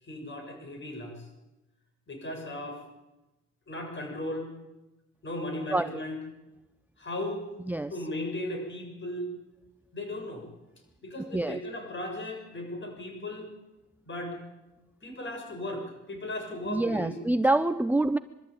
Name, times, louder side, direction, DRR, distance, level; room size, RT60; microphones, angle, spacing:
voice 1, 0.0-1.3 2.1-2.8 3.7-4.5 5.2-6.2 7.0-7.4 7.9-9.3 9.9-10.5 11.0-13.5 14.0-14.4 15.0-17.2, left 1 dB, 40° left, 3 dB, 7.2 m, -36 dB
voice 2, 16.7-18.2, right 2 dB, 5° right, 11 dB, 0.6 m, -26 dB
22.5 x 13.5 x 9.1 m, 1.0 s
cardioid pair, 90°, 30 cm